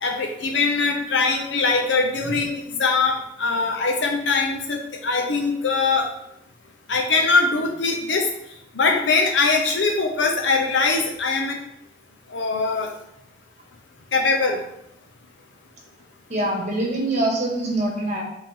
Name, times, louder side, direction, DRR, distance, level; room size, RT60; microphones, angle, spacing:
voice 1, 0.0-6.1 6.9-8.2 8.8-11.6 12.3-12.9 14.1-14.6, left 4 dB, 85° left, 2 dB, 0.7 m, -22 dB
voice 2, 16.3-18.2, right 1 dB, 40° right, -2 dB, 1.9 m, -24 dB
7.6 x 3.7 x 3.6 m, 0.84 s
head